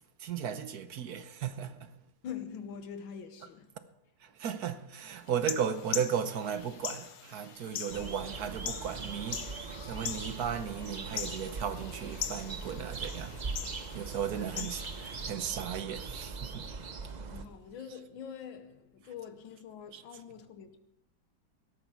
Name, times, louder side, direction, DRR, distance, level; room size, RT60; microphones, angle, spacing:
voice 1, 0.2-1.9 4.2-13.6 13.9-16.7 19.9-20.0, right 8 dB, 60° right, 1.3 m, -36 dB
voice 2, 2.2-3.7 14.6-14.8 17.3-20.8, left 7 dB, 85° left, 1.7 m, -44 dB
sound 1, 5.3-15.3, left 8 dB, 60° left, 1.4 m, -42 dB
sound 2, 7.9-17.5, right 4 dB, 75° right, 0.4 m, -41 dB
17.5 x 13.0 x 4.7 m
omnidirectional pair, 2.1 m